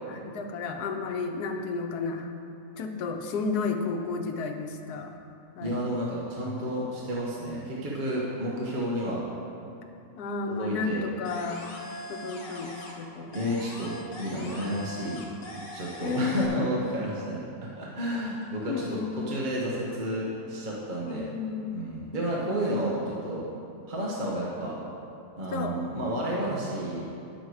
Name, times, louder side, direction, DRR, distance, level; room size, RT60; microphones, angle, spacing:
voice 1, 0.1-2.3 2.8-5.2 5.6-5.8 6.4-6.6 8.5-9.0 10.2-11.7 12.1-13.5 14.2-14.8 16.0-16.6 18.7-19.4 21.0-21.8 22.4-22.9 25.5-25.7, left 4 dB, 85° left, 4 dB, 1.3 m, -33 dB
voice 2, 5.6-9.2 10.5-11.1 13.3-15.2 15.7-21.3 21.7-23.4 23.9-24.8 25.4-27.0, right 1 dB, 35° right, -5 dB, 1.1 m, -31 dB
sound 1, 11.2-13.1 13.3-16.5, left 1 dB, 65° left, 1.7 m, -41 dB
9.6 x 6.7 x 4.7 m, 2.6 s
omnidirectional pair, 1.6 m